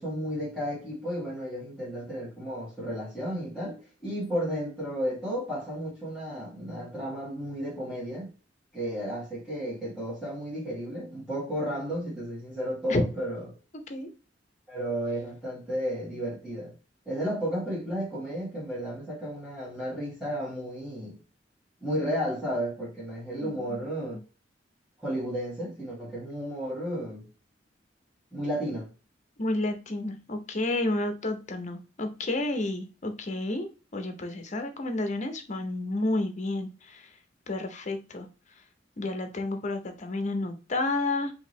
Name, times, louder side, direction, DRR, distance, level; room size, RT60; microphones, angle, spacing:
voice 1, 0.0-8.3 8.7-13.5 14.7-16.7 17.0-21.2 21.8-24.2 25.0-27.3 28.3-28.9, equal, 5° left, 1.5 m, -33 dB
voice 2, 23.4-23.8 29.4-37.1 37.5-38.3 39.0-41.3, left 2 dB, 40° left, 0.7 m, -31 dB
4.7 x 2.7 x 3.1 m
head